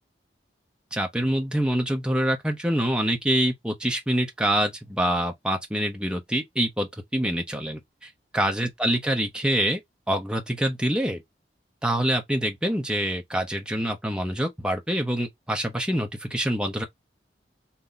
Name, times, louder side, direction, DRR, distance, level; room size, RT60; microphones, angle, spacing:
voice 1, 0.9-9.8 10.1-11.2 11.8-16.8, right 1 dB, 5° right, 0.8 m, -26 dB
3.2 x 2.9 x 3.9 m
head